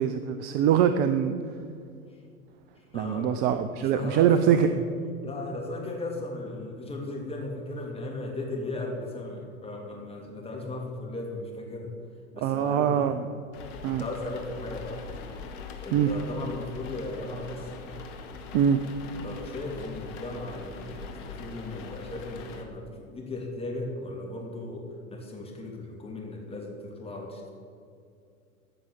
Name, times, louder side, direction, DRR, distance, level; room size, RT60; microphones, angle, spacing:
voice 1, 0.0-1.4 2.9-4.7 12.4-13.4 13.8-14.0 15.9-16.1 18.5-18.8, right 9 dB, 25° right, 10 dB, 0.4 m, -23 dB
voice 2, 2.9-3.3 3.8-4.7 5.2-11.9 12.3-13.1 13.8-15.3 15.8-17.7 19.2-27.5, left 2 dB, 15° left, -1 dB, 2.9 m, -36 dB
sound 1, 13.5-22.6, left 4 dB, 55° left, 1.9 m, -42 dB
15.0 x 6.2 x 8.1 m, 2.4 s
hypercardioid pair, 100°, 44 cm